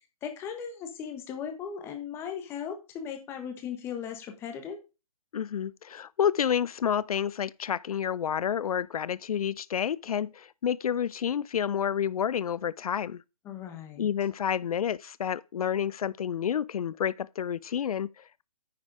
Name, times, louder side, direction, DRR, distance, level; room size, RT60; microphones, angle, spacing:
voice 1, 0.2-4.8 13.4-14.1, left 8 dB, 15° left, 1.2 m, -37 dB
voice 2, 5.3-13.2 14.0-18.4, left 8 dB, 75° left, 0.4 m, -29 dB
9.7 x 5.2 x 4.8 m
hypercardioid pair, 160°, 19 cm